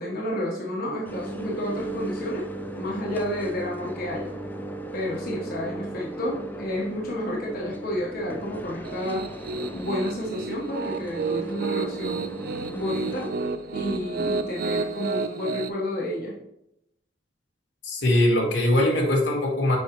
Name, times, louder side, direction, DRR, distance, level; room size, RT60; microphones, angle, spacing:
voice 1, 0.0-2.5 2.7-4.3 4.9-9.3 9.7-12.3 12.7-13.3 13.7-16.3, left 1 dB, 55° left, -4 dB, 1.3 m, -30 dB
sound 1, 1.0-13.3, right 1 dB, 10° left, 0.4 m, -37 dB
Piano, 8.8-15.7, right 4 dB, 55° right, 0.5 m, -31 dB
voice 2, 17.8-19.8, left 1 dB, 75° left, -1 dB, 1.6 m, -21 dB
6.4 x 5.6 x 3.1 m, 0.82 s
head